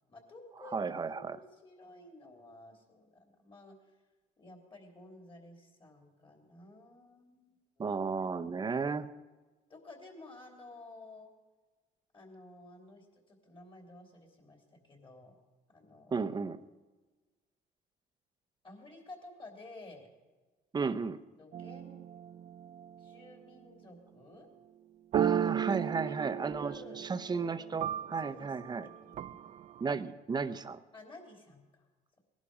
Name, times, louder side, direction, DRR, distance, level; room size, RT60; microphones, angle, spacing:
voice 1, 0.1-4.0 4.4-7.6 9.7-11.3 12.1-15.4 15.7-16.2 18.6-20.1 21.4-22.0 23.0-24.5 25.7-27.1 28.2-29.4 29.9-30.0 30.9-31.9, left 2 dB, 30° left, 3 dB, 3.4 m, -53 dB
voice 2, 0.7-1.4 7.8-9.1 16.1-16.6 20.7-21.2 25.1-28.9 29.8-30.8, right 5 dB, 25° right, 12 dB, 0.8 m, -34 dB
sound 1, 21.5-23.3 25.1-29.9, right 10 dB, 45° right, 0.4 m, -36 dB
19.0 x 11.5 x 5.0 m, 1.3 s
cardioid pair, 110°, 17 cm